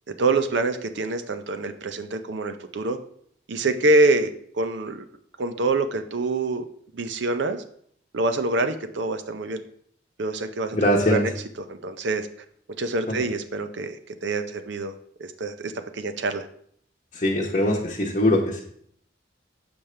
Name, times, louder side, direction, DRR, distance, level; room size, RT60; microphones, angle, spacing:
voice 1, 0.1-3.0 3.5-5.0 5.4-6.6 6.9-7.6 8.1-9.6 10.2-11.3 11.7-12.3 12.8-14.9 15.2-16.5, right 2 dB, 65° right, 9 dB, 0.6 m, -25 dB
voice 2, 10.7-11.2 17.1-18.6, left 1 dB, 40° left, -4 dB, 0.9 m, -21 dB
7.1 x 5.2 x 3.2 m, 0.64 s
head